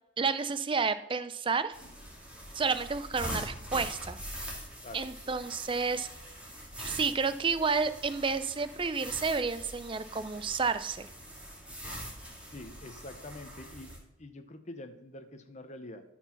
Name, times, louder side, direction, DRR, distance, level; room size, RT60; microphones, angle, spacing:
voice 1, 0.2-1.7 2.5-4.2 4.9-6.1 6.8-11.1, right 5 dB, 25° right, 12 dB, 0.5 m, -30 dB
sound 1, 1.7-14.0, equal, 5° right, 2.4 m, -43 dB
voice 2, 12.5-13.9 14.2-16.0, left 2 dB, 35° left, 8 dB, 0.8 m, -45 dB
13.0 x 4.6 x 5.8 m, 0.90 s
head